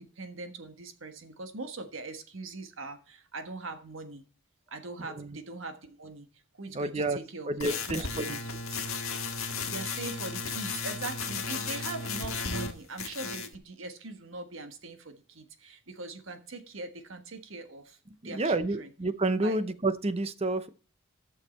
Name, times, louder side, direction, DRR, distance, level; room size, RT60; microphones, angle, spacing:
voice 1, 0.0-4.2 4.7-6.3 6.6-8.3 9.6-18.0 18.2-18.9 19.4-19.6, right 3 dB, 65° right, 7 dB, 1.4 m, -41 dB
voice 2, 6.7-7.2 7.5-8.4 8.7-8.8 18.2-20.7, right 2 dB, 30° right, 13 dB, 0.7 m, -29 dB
sound 1, 7.6-12.7 13.0-13.6, left 4 dB, 70° left, 1.6 m, -34 dB
12.0 x 6.5 x 4.3 m, 0.39 s
head